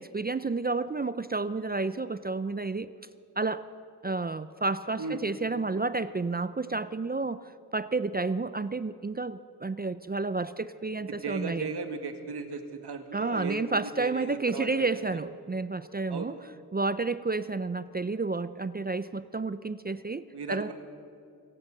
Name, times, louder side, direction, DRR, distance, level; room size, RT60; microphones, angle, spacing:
voice 1, 0.0-2.9 3.4-3.6 4.0-11.7 13.1-16.3 16.7-20.7, right 3 dB, 25° right, 14 dB, 0.4 m, -31 dB
voice 2, 5.0-5.3 11.0-15.0 16.1-16.3 20.3-20.7, right 4 dB, 90° right, 6 dB, 2.1 m, -36 dB
26.0 x 16.0 x 6.6 m, 2.5 s
wide cardioid pair, 150°, 39 cm